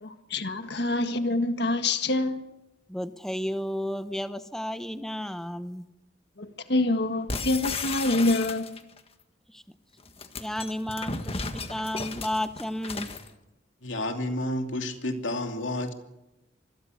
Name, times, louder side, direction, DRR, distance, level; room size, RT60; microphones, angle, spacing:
voice 1, 0.0-2.4 6.4-8.8, left 2 dB, 60° left, 1.7 m, -26 dB
voice 2, 2.9-5.8 9.5-9.6 10.4-13.1, equal, ahead, 0.7 m, -32 dB
sound 1, 7.3-9.0 10.0-13.3, left 4 dB, 30° left, 1.6 m, -34 dB
voice 3, 13.8-15.9, left 1 dB, 85° left, 2.9 m, -30 dB
26.0 x 21.5 x 6.6 m
head